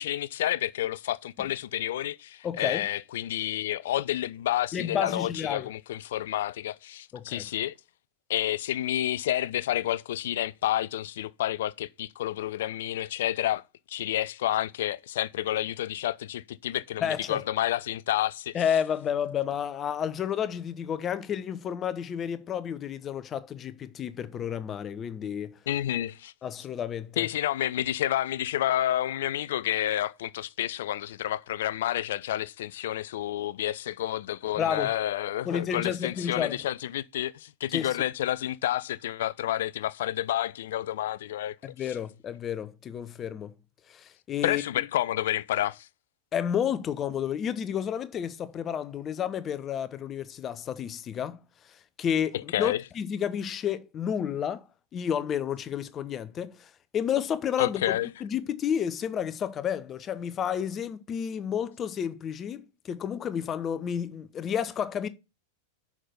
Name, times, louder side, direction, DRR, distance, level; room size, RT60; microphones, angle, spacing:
voice 1, 0.0-7.7 8.3-13.6 13.9-18.6 25.7-26.3 27.2-41.6 41.9-42.0 44.4-45.9 52.5-52.8 57.6-58.1, left 13 dB, 55° left, 0.4 m, -29 dB
voice 2, 2.4-2.9 4.7-5.7 7.1-7.4 17.0-17.4 18.5-25.5 26.4-27.3 34.6-34.9 35.4-36.6 37.7-37.9 41.6-43.5 43.9-44.6 46.3-51.4 51.7-54.6 54.9-65.1, left 8 dB, 25° left, 0.8 m, -31 dB
6.4 x 5.9 x 6.7 m
figure-of-eight pair, 90°, 0 cm